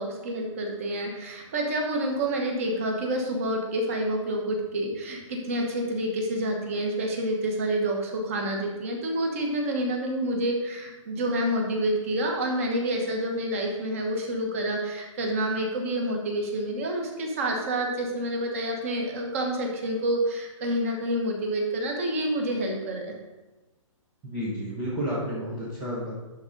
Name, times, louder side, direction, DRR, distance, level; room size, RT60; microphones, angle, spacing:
voice 1, 0.0-23.1, right 1 dB, 25° right, 1 dB, 1.1 m, -28 dB
voice 2, 24.2-26.1, equal, 5° right, -8 dB, 0.4 m, -31 dB
11.0 x 3.7 x 5.3 m, 1.1 s
hypercardioid pair, 180°, 17 cm